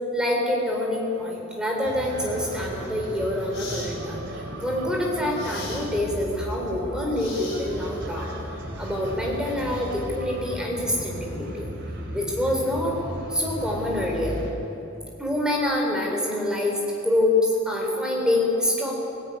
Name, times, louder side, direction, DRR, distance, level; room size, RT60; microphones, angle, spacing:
voice 1, 0.1-4.2 4.6-8.3 8.8-11.7 12.1-13.0 13.3-14.4 15.2-18.9, left 1 dB, 5° right, -1 dB, 3.5 m, -26 dB
sound 1, 1.8-14.5, equal, 65° right, 3.3 m, -35 dB
sound 2, 2.8-2.9 3.5-3.9 5.3-5.9 7.1-7.9, left 3 dB, 55° left, 6.9 m, -38 dB
18.5 x 16.5 x 9.5 m, 3.0 s
head